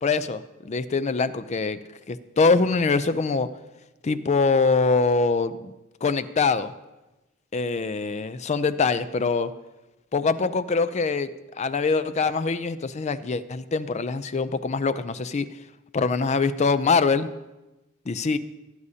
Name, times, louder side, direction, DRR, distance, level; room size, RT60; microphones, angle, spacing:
voice 1, 0.0-1.8 2.1-3.5 4.0-5.7 6.0-6.7 7.5-9.5 10.1-15.5 15.9-17.3 18.1-18.4, left 4 dB, 35° left, 13 dB, 0.4 m, -23 dB
17.5 x 9.7 x 2.8 m, 1.0 s
head